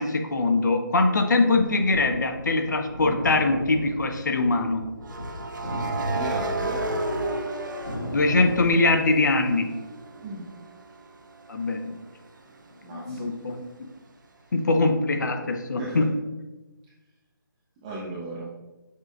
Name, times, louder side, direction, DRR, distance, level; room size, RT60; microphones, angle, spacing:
voice 1, 0.0-4.8 8.1-9.7 11.5-12.0 12.9-13.6 14.5-16.1, left 3 dB, 55° left, 6 dB, 0.6 m, -22 dB
sound 1, 1.5-7.2 7.6-9.5, equal, 90° left, 1.1 m, -35 dB
sound 2, 1.7-1.9 5.0-8.9 9.3-12.9, right 2 dB, 60° right, 0.6 m, -33 dB
voice 2, 6.1-6.8 10.2-10.5 12.8-13.3 15.8-16.0 17.8-18.5, right 2 dB, 10° right, -7 dB, 0.4 m, -35 dB
6.4 x 3.3 x 2.4 m, 1.1 s
figure-of-eight pair, 155°, 12 cm